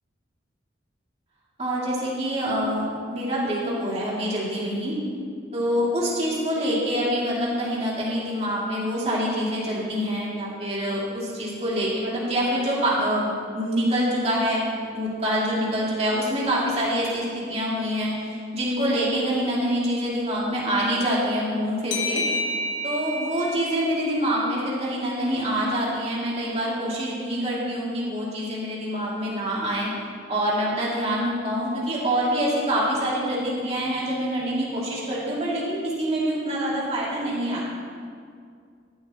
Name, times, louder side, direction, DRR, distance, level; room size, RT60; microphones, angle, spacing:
voice 1, 1.6-4.9 5.5-17.2 17.5-22.2 22.8-29.9 30.3-37.8, equal, 35° right, -6 dB, 2.7 m, -26 dB
sound 1, 21.9-25.2, left 1 dB, 85° left, 1.1 m, -31 dB
14.0 x 11.5 x 3.1 m, 2.2 s
head